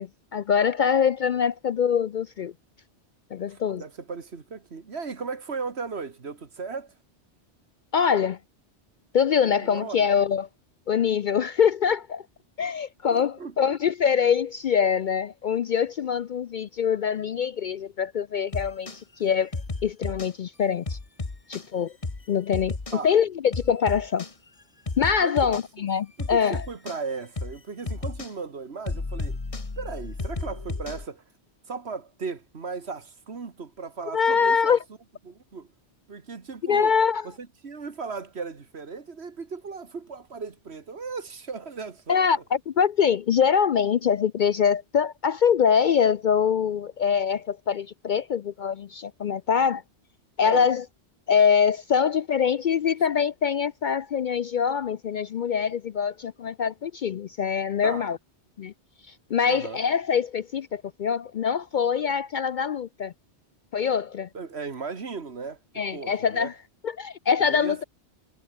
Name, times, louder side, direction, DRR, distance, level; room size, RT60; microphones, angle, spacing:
voice 1, 0.0-2.5 3.3-3.8 7.9-8.4 9.1-10.5 10.9-12.2 12.6-18.9 19.2-19.5 19.8-21.0 21.5-21.9 22.3-22.7 23.0-24.2 25.0-26.6 34.1-34.8 36.7-37.2 42.1-42.4 42.7-49.8 50.4-50.8 51.3-58.2 58.6-58.7 59.3-63.1 63.7-64.3 65.8-66.5 67.0-67.8, left 7 dB, 60° left, 0.6 m, -24 dB
voice 2, 3.5-6.9 9.4-10.1 13.1-13.7 22.9-23.1 25.2-25.6 26.2-29.4 29.8-31.2 31.7-34.8 35.3-35.7 36.1-37.0 37.2-42.3 50.4-50.7 57.8-58.1 59.5-59.8 64.3-66.5 67.4-67.8, right 4 dB, 65° right, 2.0 m, -36 dB
sound 1, 18.5-19.0 19.5-20.3 20.9-21.7 22.0-22.2 22.5-23.0 23.5-24.3 24.9-25.7 26.2-27.0 27.4-27.6 27.9-28.3 28.9-31.1, left 3 dB, 30° left, 1.6 m, -33 dB
omnidirectional pair, 1.2 m